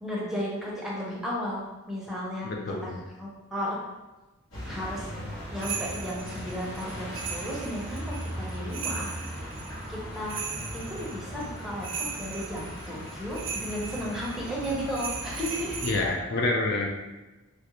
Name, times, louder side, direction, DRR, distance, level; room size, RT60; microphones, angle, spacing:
voice 1, 0.0-2.5 2.8-2.9 3.2-3.8 4.6-5.1 5.5-9.1 9.9-10.4 10.7-11.9 12.1-15.8, equal, ahead, -5 dB, 0.6 m, -34 dB
voice 2, 2.4-3.0 15.8-16.9, left 2 dB, 50° left, 0 dB, 0.4 m, -27 dB
sound 1, 4.5-16.1, equal, 75° left, 1.1 m, -38 dB
sound 2, 5.6-15.9, right 6 dB, 65° right, 0.4 m, -38 dB
3.2 x 2.4 x 2.9 m, 1.1 s
head